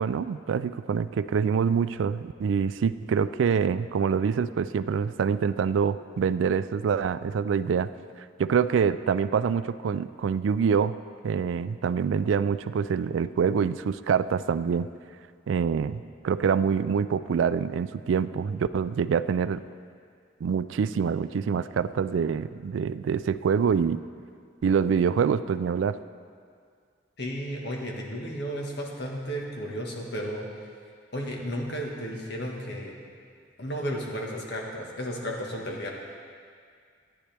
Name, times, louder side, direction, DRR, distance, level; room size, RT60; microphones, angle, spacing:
voice 1, 0.0-7.9 8.4-10.9 11.2-14.9 15.5-19.6 20.4-24.0 24.6-26.0, right 6 dB, 85° right, 14 dB, 0.3 m, -25 dB
voice 2, 27.2-30.5 31.1-33.0 33.6-35.9, equal, 60° left, -1 dB, 1.5 m, -33 dB
14.5 x 9.8 x 3.4 m, 2.1 s
head